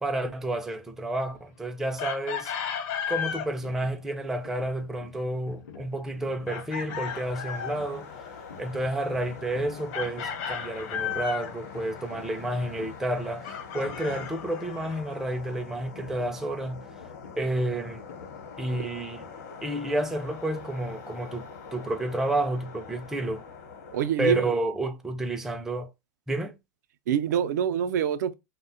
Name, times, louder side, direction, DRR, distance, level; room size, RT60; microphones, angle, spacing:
voice 1, 0.0-2.5 3.1-8.1 8.6-16.8 17.4-18.0 18.6-19.2 19.6-23.4 24.2-25.9 26.3-26.6, right 1 dB, 5° right, 0.3 m, -30 dB
Chicken rooster, 2.0-3.5 6.5-7.8 9.9-11.5 13.4-15.0, left 7 dB, 45° left, 0.5 m, -34 dB
sound 1, 3.2-19.0, left 7 dB, 85° left, 0.7 m, -49 dB
sound 2, 7.1-24.1, left 5 dB, 65° left, 0.9 m, -44 dB
voice 2, 23.9-24.5 27.1-28.3, right 8 dB, 75° right, 0.4 m, -25 dB
2.7 x 2.1 x 2.5 m
supercardioid pair, 140°, 9 cm